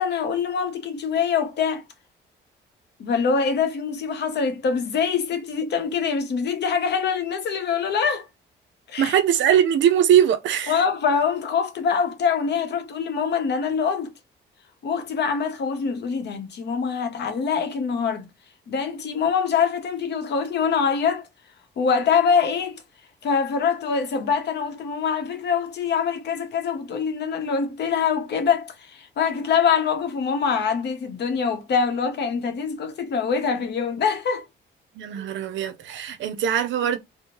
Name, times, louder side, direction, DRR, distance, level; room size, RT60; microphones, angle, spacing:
voice 1, 0.0-1.8 3.0-8.3 8.9-9.1 10.7-14.1 14.8-18.3 18.7-21.3 21.8-22.8 23.2-34.5, left 6 dB, 60° left, 0.7 m, -24 dB
voice 2, 9.0-10.8 35.0-37.0, right 9 dB, 70° right, 0.5 m, -21 dB
2.7 x 2.0 x 2.9 m
cardioid pair, 90°, 20 cm